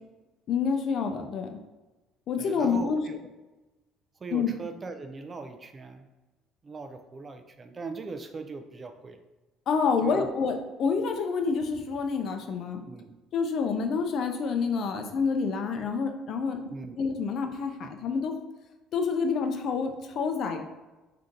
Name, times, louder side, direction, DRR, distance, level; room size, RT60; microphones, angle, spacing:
voice 1, 0.5-1.6 2.3-3.0 4.3-4.5 9.7-12.8 13.3-16.6 17.0-18.3 18.9-20.6, left 5 dB, 60° left, 5 dB, 0.5 m, -28 dB
voice 2, 2.4-3.2 4.2-6.1 6.6-9.2 10.0-10.3 12.9-13.2 16.7-17.0, right 4 dB, 30° right, 7 dB, 0.4 m, -40 dB
3.7 x 2.8 x 3.7 m, 1.1 s
supercardioid pair, 95°, 0 cm